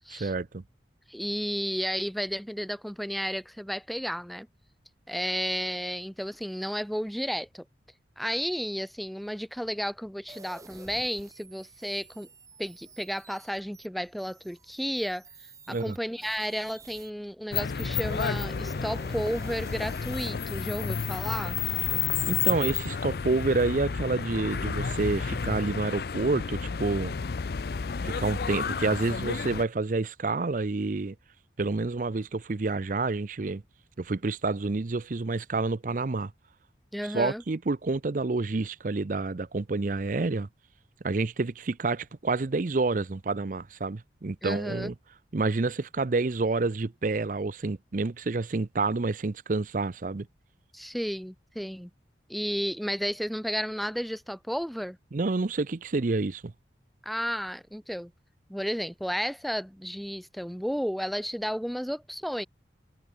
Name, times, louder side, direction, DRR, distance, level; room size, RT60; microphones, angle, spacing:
voice 1, 0.1-0.6 15.7-16.0 22.3-27.1 28.0-31.2 31.6-33.6 34.0-36.3 37.0-40.5 41.0-44.9 45.3-50.3 55.1-56.5, right 3 dB, 45° right, 0.6 m, -28 dB
voice 2, 1.1-4.5 5.1-7.6 8.2-12.3 12.6-15.2 15.7-21.6 36.9-37.4 44.4-44.9 50.7-51.9 52.3-55.0 57.0-58.1 58.5-62.5, equal, ahead, 0.7 m, -32 dB
sound 1, 10.3-17.1 17.6-20.3, right 3 dB, 20° right, 3.5 m, -51 dB
sound 2, 17.5-29.6, left 6 dB, 55° left, 0.5 m, -31 dB
head